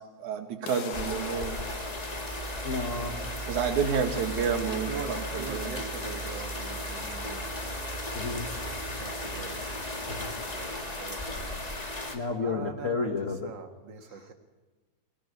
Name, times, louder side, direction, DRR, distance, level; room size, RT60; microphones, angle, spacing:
voice 1, 0.2-1.6 3.5-5.7, right 6 dB, 90° right, 6 dB, 3.3 m, -30 dB
sound 1, 0.7-6.6, left 5 dB, 85° left, 3.2 m, -43 dB
sound 2, 0.9-12.2, equal, 15° left, 1.5 m, -35 dB
voice 2, 2.6-3.2 8.1-8.5 10.0-10.5 12.1-13.5 14.1-14.3, left 4 dB, 60° left, 6 dB, 0.8 m, -32 dB
voice 3, 4.9-7.5 8.9-9.6 11.0-11.7 12.4-14.3, right 5 dB, 45° right, 6 dB, 2.0 m, -42 dB
20.5 x 17.5 x 9.7 m, 1.3 s
omnidirectional pair, 3.3 m